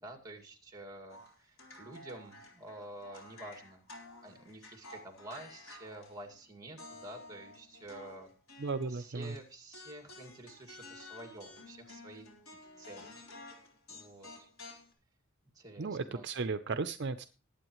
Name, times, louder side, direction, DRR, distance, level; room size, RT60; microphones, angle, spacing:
voice 1, 0.0-3.8 4.2-8.3 8.9-13.1 13.9-14.5 15.5-16.3, right 1 dB, 15° right, 5 dB, 2.1 m, -49 dB
sound 1, 1.1-6.4 6.8-9.4 9.7-14.9, left 2 dB, 70° left, 3.9 m, -52 dB
voice 2, 8.6-9.3 15.8-17.2, right 4 dB, 50° right, 10 dB, 0.5 m, -35 dB
20.0 x 8.7 x 3.1 m, 0.35 s
head